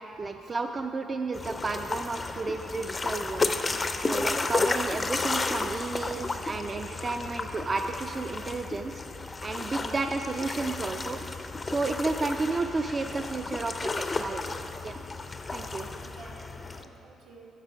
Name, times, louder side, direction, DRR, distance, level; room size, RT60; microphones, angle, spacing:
voice 1, 0.0-3.5 3.9-8.9 9.4-11.2 11.6-13.9 14.2-14.6 14.8-15.0 15.5-15.9, right 3 dB, 30° right, 6 dB, 0.4 m, -32 dB
sound 1, 1.3-16.8, left 3 dB, 30° left, 0.4 m, -33 dB
voice 2, 15.5-17.5, right 3 dB, 80° right, -3 dB, 1.5 m, -51 dB
9.4 x 6.6 x 4.7 m, 2.9 s
cardioid pair, 90°, 0 cm